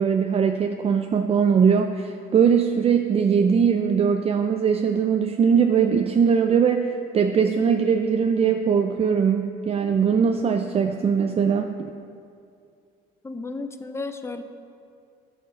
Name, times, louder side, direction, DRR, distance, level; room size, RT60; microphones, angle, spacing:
voice 1, 0.0-11.8, right 6 dB, 35° right, 5 dB, 0.5 m, -21 dB
voice 2, 13.2-14.4, left 3 dB, 15° left, 8 dB, 0.6 m, -33 dB
10.5 x 6.9 x 6.4 m, 2.4 s
cardioid pair, 110°, 17 cm